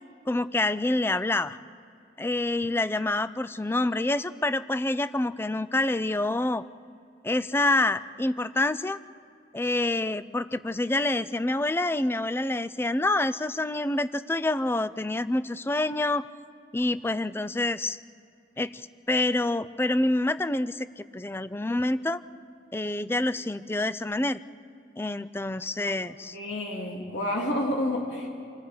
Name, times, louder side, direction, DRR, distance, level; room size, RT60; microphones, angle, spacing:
voice 1, 0.3-1.6 2.2-6.6 7.2-9.0 9.5-16.2 16.7-18.0 18.6-22.2 22.7-24.4 25.0-26.4, left 2 dB, 15° left, 15 dB, 0.4 m, -27 dB
voice 2, 26.3-28.3, left 1 dB, 85° left, -1 dB, 2.8 m, -29 dB
28.5 x 20.5 x 5.1 m, 2.5 s
head